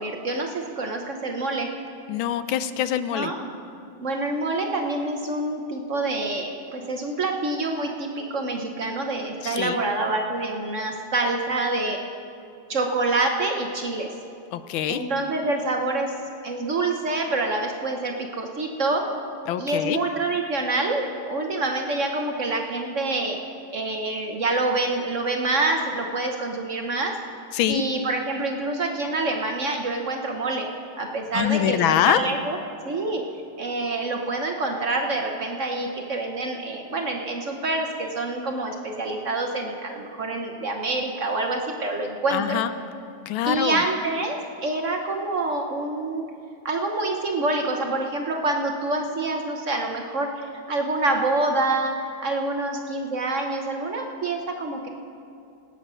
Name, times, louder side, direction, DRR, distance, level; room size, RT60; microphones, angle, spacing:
voice 1, 0.0-1.7 3.1-3.4 4.0-12.0 12.7-14.1 14.9-16.1 16.4-19.1 19.6-23.4 23.7-27.2 27.7-30.7 31.0-32.6 32.8-33.2 33.6-42.6 43.4-46.2 46.6-54.9, right 2 dB, 50° right, 3 dB, 1.0 m, -26 dB
voice 2, 2.1-3.3 9.4-9.8 14.5-15.0 19.5-20.0 27.5-27.8 31.3-32.2 42.3-42.7 43.3-43.8, left 11 dB, 90° left, 12 dB, 1.4 m, -24 dB
16.5 x 8.9 x 6.2 m, 2.5 s
omnidirectional pair, 2.1 m